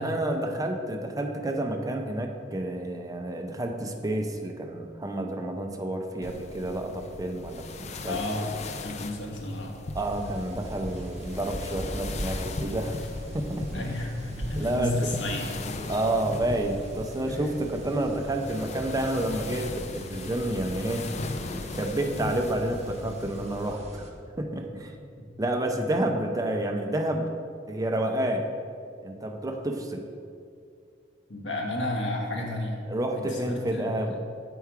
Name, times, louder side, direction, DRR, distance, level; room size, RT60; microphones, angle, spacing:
voice 1, 0.0-8.2 9.9-13.1 13.3-13.7 14.6-14.9 15.9-21.1 21.7-25.0 25.4-27.3 27.7-28.5 29.0-30.0 32.9-34.2, right 1 dB, 20° right, 4 dB, 0.5 m, -29 dB
sound 1, 6.2-23.8, left 3 dB, 40° left, 0.4 m, -39 dB
voice 2, 8.1-8.4 8.8-9.7 13.7-15.6 17.3-17.6 25.2-25.3 31.3-32.8 33.2-33.8, left 1 dB, 80° left, 0 dB, 1.2 m, -32 dB
sound 2, 9.9-24.1, equal, 35° right, 0.9 m, -41 dB
7.1 x 4.5 x 4.7 m, 2.3 s
head